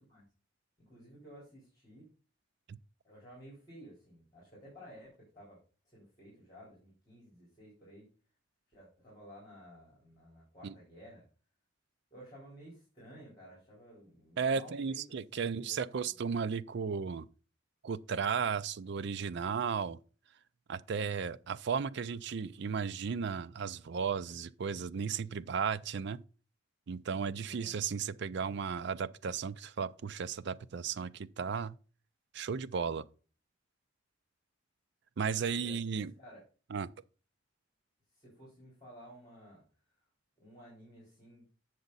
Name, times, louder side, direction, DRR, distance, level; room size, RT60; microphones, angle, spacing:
voice 1, 0.8-2.1 3.0-8.1 8.7-11.2 12.1-15.0 15.3-16.2 27.4-27.7 35.4-36.4 38.1-39.6 40.4-41.5, equal, 20° left, 4.0 m, -54 dB
voice 2, 14.4-17.3 17.8-20.0 20.7-26.2 26.9-31.8 32.3-33.0 35.2-36.1 36.7-36.9, right 6 dB, 60° right, 0.4 m, -35 dB
8.1 x 6.5 x 4.0 m
head